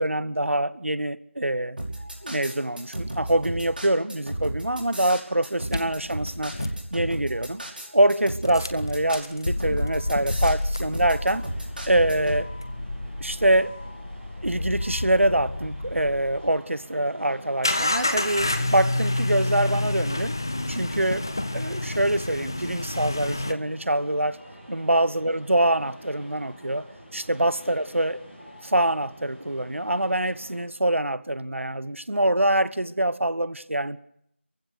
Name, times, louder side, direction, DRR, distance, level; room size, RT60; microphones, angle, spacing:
voice 1, 0.0-1.8 2.2-6.5 6.9-7.6 7.9-11.4 11.9-12.5 13.2-13.7 14.4-20.3 20.7-21.2 21.5-24.4 24.7-26.8 27.1-28.2 28.6-34.0, right 1 dB, 80° right, 1.2 m, -24 dB
sound 1, 1.8-12.4, right 1 dB, 45° right, 5.8 m, -34 dB
sound 2, 5.7-7.4 8.4-16.6 17.6-23.5, left 1 dB, 20° left, 0.8 m, -29 dB
sound 3, 11.2-30.6, equal, 5° right, 6.6 m, -48 dB
29.5 x 15.5 x 6.6 m
figure-of-eight pair, 175°, 7 cm